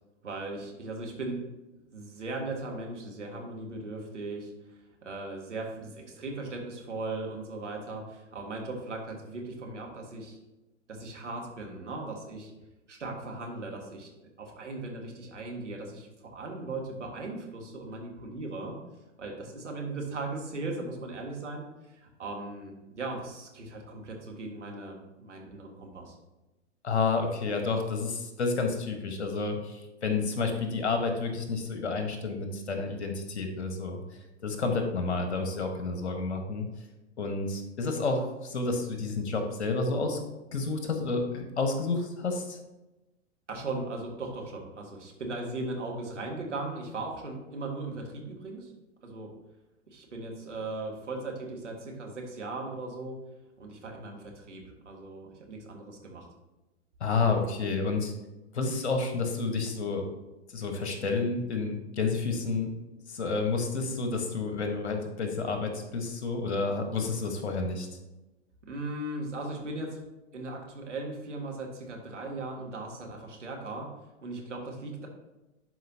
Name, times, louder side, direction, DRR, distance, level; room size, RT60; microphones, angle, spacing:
voice 1, 0.2-1.4 1.9-10.4 10.9-12.5 12.9-14.1 14.4-18.8 19.2-21.7 21.9-26.2 43.5-48.7 49.0-49.3 49.9-53.2 53.6-56.3 68.6-70.0 70.3-73.9 74.2-75.1, right 2 dB, 75° right, 0 dB, 1.8 m, -38 dB
voice 2, 26.8-34.0 34.4-36.7 37.2-40.2 40.5-42.6 57.0-58.1 58.5-60.0 60.5-62.7 63.1-67.9, left 4 dB, 65° left, 5 dB, 1.4 m, -30 dB
11.0 x 4.9 x 2.8 m, 1.0 s
figure-of-eight pair, 105°, 36 cm